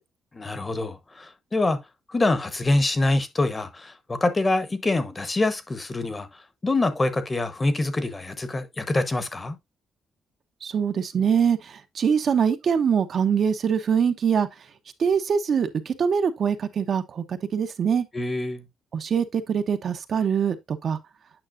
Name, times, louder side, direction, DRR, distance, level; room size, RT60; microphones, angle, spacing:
voice 1, 0.3-1.8 2.1-9.6 18.1-18.6, left 2 dB, 20° left, 1.0 m, -25 dB
voice 2, 10.6-14.5 15.0-18.1 18.9-21.0, right 7 dB, 50° right, 0.8 m, -23 dB
9.0 x 6.0 x 2.5 m
cardioid pair, 125°, 0 cm